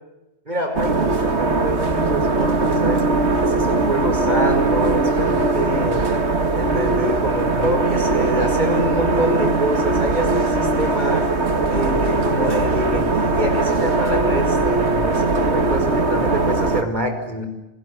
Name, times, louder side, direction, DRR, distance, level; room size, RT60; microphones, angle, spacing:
voice 1, 0.5-3.0 3.4-6.0 6.6-11.3 11.7-17.4, equal, 40° right, 6 dB, 5.4 m, -26 dB
sound 1, 0.7-16.8, right 3 dB, 85° right, 2.3 m, -20 dB
28.5 x 21.0 x 9.5 m, 1.0 s
omnidirectional pair, 1.1 m